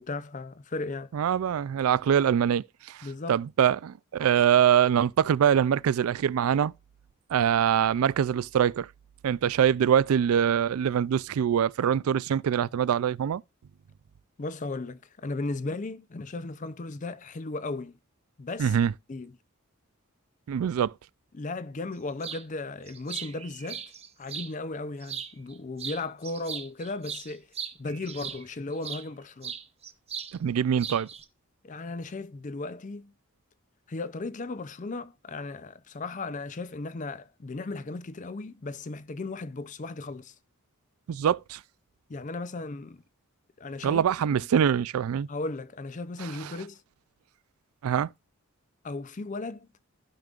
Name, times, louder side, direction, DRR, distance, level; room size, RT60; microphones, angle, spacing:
voice 1, 0.0-1.1 3.0-3.4 14.4-18.0 18.4-18.8 19.1-19.3 21.3-23.8 24.2-27.5 27.8-29.5 31.6-33.1 33.9-40.3 42.1-43.0 43.6-44.0 44.3-44.5 45.3-46.8 48.8-49.7, left 3 dB, 35° left, 0.5 m, -36 dB
voice 2, 1.1-6.7 7.3-8.9 9.2-13.4 18.6-18.9 20.5-20.9 30.4-31.1 41.1-41.6 43.8-45.3 46.2-46.5 47.8-48.1, right 8 dB, 80° right, 0.3 m, -24 dB
sound 1, 22.2-22.4 22.9-24.5 25.0-25.5 25.8-29.1 29.4-30.3 30.6-31.2, right 7 dB, 30° right, 0.8 m, -38 dB
15.5 x 5.2 x 2.4 m
head